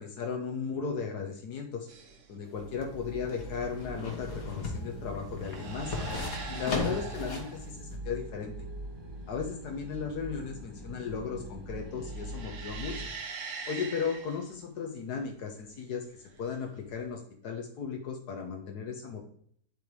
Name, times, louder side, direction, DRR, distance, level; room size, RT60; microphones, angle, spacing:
voice 1, 0.0-1.9 2.3-6.0 6.5-8.5 9.3-13.1 13.7-19.2, left 6 dB, 80° left, 2 dB, 1.5 m, -36 dB
sound 1, 1.9-2.3 3.9-4.2 5.3-7.7 11.9-14.5 16.4-17.1, right 4 dB, 55° right, 1.2 m, -42 dB
sound 2, 2.5-7.6 7.9-8.0, left 3 dB, 60° left, 1.8 m, -37 dB
sound 3, 2.6-13.1, right 1 dB, 20° right, 1.1 m, -43 dB
10.0 x 3.4 x 4.6 m, 0.62 s
omnidirectional pair, 1.7 m